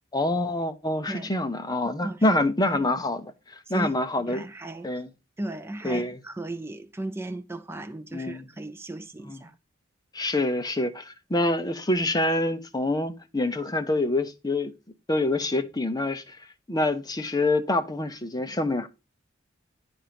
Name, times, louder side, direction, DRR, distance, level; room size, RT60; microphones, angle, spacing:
voice 1, 0.1-4.4 4.8-5.1 5.8-6.2 8.1-8.4 9.3-9.4 10.1-14.7 15.1-16.4 16.7-18.9, left 2 dB, 20° left, 0.8 m, -26 dB
voice 2, 4.3-4.9 5.4-9.5, right 1 dB, 10° right, 0.5 m, -36 dB
10.5 x 4.3 x 5.1 m
head